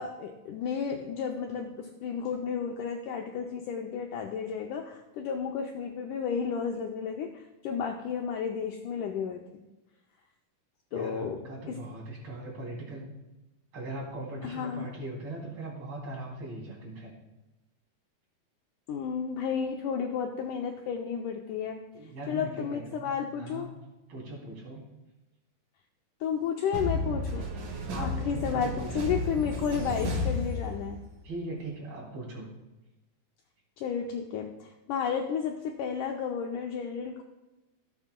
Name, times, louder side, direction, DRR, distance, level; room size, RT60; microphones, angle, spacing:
voice 1, 0.0-9.6 10.9-11.8 14.4-14.9 18.9-21.8 22.3-23.7 26.2-27.5 28.0-31.0 33.8-37.2, left 7 dB, 90° left, 2 dB, 1.8 m, -32 dB
voice 2, 10.9-13.0 13.7-17.1 21.9-23.7 24.1-24.8 27.9-29.2 31.2-32.5, right 2 dB, 35° right, -4 dB, 3.3 m, -40 dB
sound 1, 26.7-31.2, left 1 dB, 70° right, 3.0 m, -32 dB
16.5 x 7.2 x 2.2 m, 1.1 s
omnidirectional pair, 4.3 m